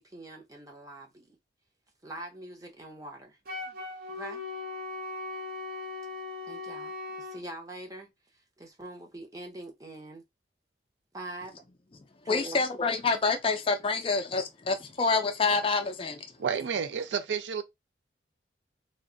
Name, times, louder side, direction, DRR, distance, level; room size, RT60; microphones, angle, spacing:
voice 1, 0.0-1.3 2.0-3.4 4.1-4.4 6.4-10.2 11.1-11.6 12.2-12.6 16.6-16.7, right 1 dB, 20° right, 0.7 m, -43 dB
Wind instrument woodwind instrument, 3.5-7.4, left 2 dB, 50° right, 0.8 m, -38 dB
voice 2, 12.3-16.2, left 4 dB, 30° left, 0.4 m, -27 dB
voice 3, 16.4-17.6, right 6 dB, 75° right, 0.4 m, -30 dB
2.6 x 2.2 x 3.7 m
head